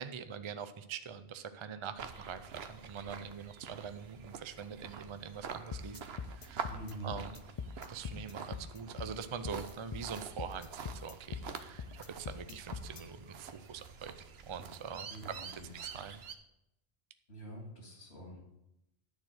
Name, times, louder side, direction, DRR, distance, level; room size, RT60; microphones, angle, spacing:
voice 1, 0.0-6.0 6.3-6.7 7.0-7.4 7.9-14.1 14.5-15.1 15.4-15.5 15.8-16.2, right 7 dB, 40° right, 11 dB, 0.5 m, -44 dB
sound 1, 2.0-16.4, right 6 dB, 75° right, 1.0 m, -47 dB
sound 2, 5.7-13.0, left 6 dB, 45° left, 0.5 m, -43 dB
voice 2, 6.6-7.1 15.1-15.7 17.3-18.4, right 2 dB, 85° left, 0 dB, 3.0 m, -46 dB
10.5 x 4.5 x 7.7 m, 0.85 s
omnidirectional pair, 1.1 m